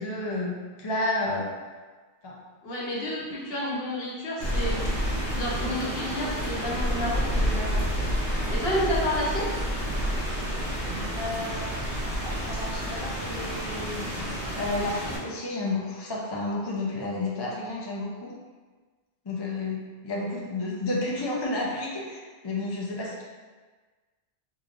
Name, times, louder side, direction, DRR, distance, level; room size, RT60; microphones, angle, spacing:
voice 1, 0.0-1.5 2.2-2.4 11.1-11.8 12.2-18.3 19.3-19.8 20.0-23.2, left 2 dB, 35° left, -4 dB, 0.4 m, -31 dB
voice 2, 2.6-7.8 8.2-9.5, left 1 dB, 65° left, -5 dB, 1.0 m, -31 dB
Rain, 4.4-15.2, equal, 85° right, 1.2 m, -29 dB
3.7 x 3.0 x 2.5 m, 1.4 s
omnidirectional pair, 1.1 m